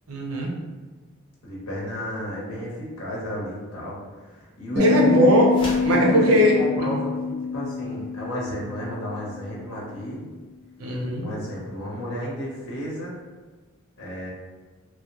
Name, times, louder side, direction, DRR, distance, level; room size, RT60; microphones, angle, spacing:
voice 1, 0.1-0.5 4.8-5.5 5.8-6.5 6.8-7.0 10.8-11.2, equal, 85° right, 0 dB, 0.6 m, -20 dB
voice 2, 1.4-5.2 5.8-10.3 11.2-13.2 14.0-14.3, equal, 80° left, -4 dB, 0.9 m, -32 dB
sound 1, 4.8-9.1, left 4 dB, 50° right, 1.0 m, -25 dB
sound 2, 5.5-6.0, left 1 dB, 25° left, 0.5 m, -35 dB
3.0 x 2.1 x 2.9 m, 1.3 s
head